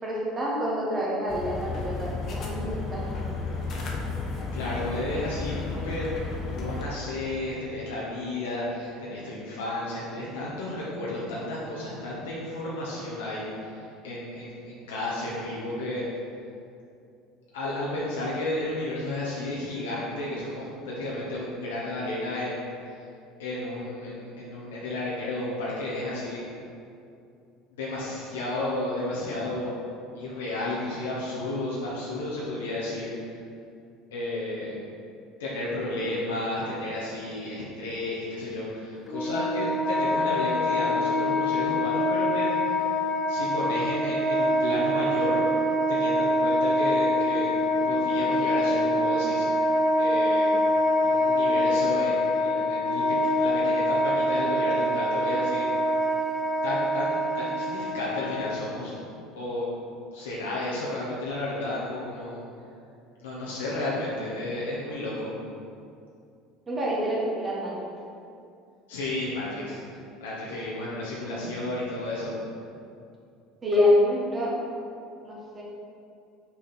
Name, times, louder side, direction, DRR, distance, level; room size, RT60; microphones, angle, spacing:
voice 1, 0.0-3.0 66.7-67.9 73.6-74.6 75.0-75.6, left 1 dB, 30° right, -5 dB, 1.5 m, -26 dB
sound 1, 1.3-6.8, left 3 dB, 50° left, 1.0 m, -33 dB
voice 2, 4.5-6.1 6.4-16.0 17.5-22.7 23.4-26.4 27.8-29.8 30.1-33.1 34.1-34.8 35.4-42.5 43.3-45.5 45.9-47.6 47.8-49.7 50.0-50.5 51.0-53.0 53.3-55.7 56.6-59.0 59.3-59.7 60.1-62.4 63.2-65.3 68.9-69.8 70.2-72.3, left 1 dB, 80° left, -7 dB, 1.0 m, -32 dB
Wind instrument woodwind instrument, 39.1-58.6, left 1 dB, 20° left, 1.0 m, -25 dB
5.8 x 4.2 x 4.1 m, 2.5 s
hypercardioid pair, 75°, 0 cm